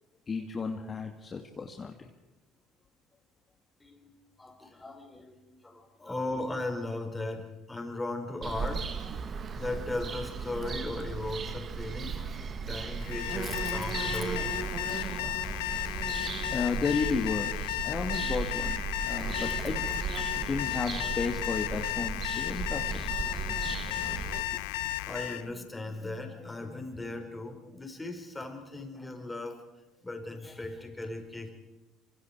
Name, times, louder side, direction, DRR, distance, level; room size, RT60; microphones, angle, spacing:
voice 1, 0.3-2.1 12.7-12.8 14.9-15.5 16.5-17.5 17.8-19.8 20.4-23.2 24.5-24.6, left 5 dB, 35° left, 3 dB, 2.4 m, -33 dB
voice 2, 3.8-4.1 4.4-14.6 19.4-19.5 20.3-20.4 23.8-29.7 30.0-31.5, left 2 dB, 15° left, 4 dB, 5.6 m, -38 dB
Bird vocalization bird call bird song, 8.4-24.4, right 6 dB, 45° right, 2.1 m, -36 dB
Alarm, 13.0-25.5, left 19 dB, 80° left, 0.8 m, -34 dB
27.0 x 25.5 x 4.8 m, 1.1 s
hypercardioid pair, 70°, 0 cm